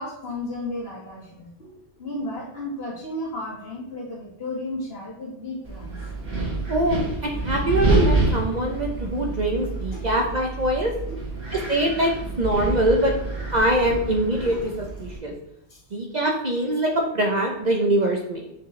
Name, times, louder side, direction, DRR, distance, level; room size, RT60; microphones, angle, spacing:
voice 1, 0.0-1.7 2.0-6.0 9.9-10.0 11.1-11.2 14.4-14.6 15.7-15.8, left 1 dB, 55° left, -3 dB, 2.0 m, -33 dB
Wind, 5.7-15.2, right 2 dB, 65° right, 1.9 m, -27 dB
voice 2, 6.7-10.9 11.5-12.1 12.4-13.1 13.5-15.3 15.9-18.5, right 1 dB, 45° right, 1 dB, 0.7 m, -23 dB
6.5 x 4.7 x 3.2 m, 0.84 s
omnidirectional pair, 1.2 m